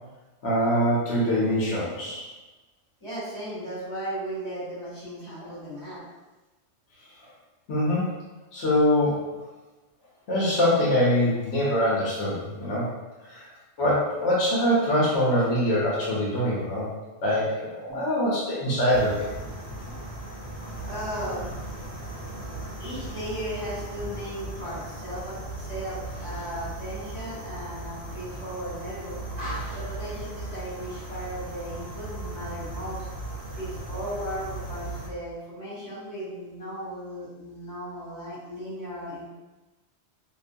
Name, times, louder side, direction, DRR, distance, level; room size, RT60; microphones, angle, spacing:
voice 1, 0.4-2.3 7.7-8.1 8.5-9.3 10.3-12.9 13.3-13.4 13.8-16.9 17.2-19.3, equal, 75° left, -6 dB, 1.0 m, -24 dB
voice 2, 3.0-6.0 17.9-18.0 19.9-20.0 20.9-21.5 22.8-29.2 29.7-33.1 33.5-39.3, equal, 30° left, -9 dB, 1.3 m, -36 dB
sound 1, 18.9-35.1, right 2 dB, 45° right, 0.9 m, -37 dB
2.5 x 2.2 x 2.5 m, 1.2 s
omnidirectional pair, 1.1 m